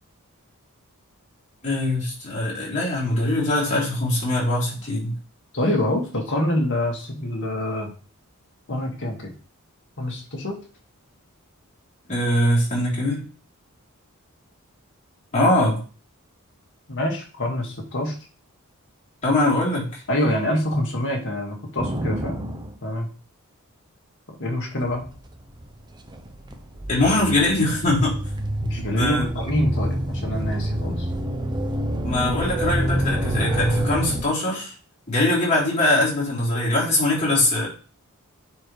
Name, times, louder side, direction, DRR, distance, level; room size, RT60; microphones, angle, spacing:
voice 1, 1.6-5.1 12.1-13.2 15.3-15.8 19.2-20.0 26.9-28.2 28.9-29.3 32.0-34.7 35.1-37.7, left 1 dB, 35° left, -6 dB, 3.7 m, -22 dB
voice 2, 5.5-7.9 8.7-9.3 10.0-10.6 16.9-18.1 20.1-22.5 22.8-23.1 24.4-25.0 28.6-31.1, left 1 dB, 55° left, 0 dB, 2.1 m, -26 dB
sound 1, 21.8-22.7 24.8-34.2, right 1 dB, 20° right, 0.8 m, -28 dB
10.0 x 4.6 x 3.3 m, 0.38 s
head